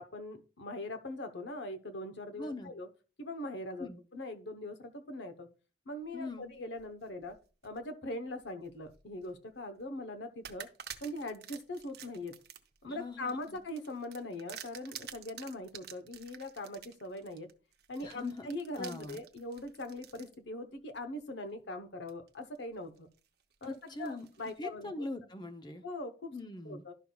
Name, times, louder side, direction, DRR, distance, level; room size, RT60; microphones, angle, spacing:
voice 1, 0.0-2.9 3.2-5.5 5.9-7.4 7.6-10.7 11.0-12.4 12.8-17.5 17.9-23.1 23.6-25.1 25.8-26.3 26.6-26.9, left 2 dB, 80° left, 8 dB, 0.9 m, -41 dB
voice 2, 2.3-2.7 3.8-4.0 6.1-6.5 12.9-13.6 18.0-18.5 18.7-19.2 23.7-24.3 24.6-25.8 26.3-26.8, left 2 dB, 25° left, 7 dB, 0.6 m, -42 dB
sound 1, 6.6-7.8 8.4-9.3 9.7-9.9 10.4-20.3 20.9-21.0 22.1-22.6 23.0-24.6, right 9 dB, 60° right, 0.7 m, -50 dB
12.0 x 5.5 x 2.3 m, 0.35 s
head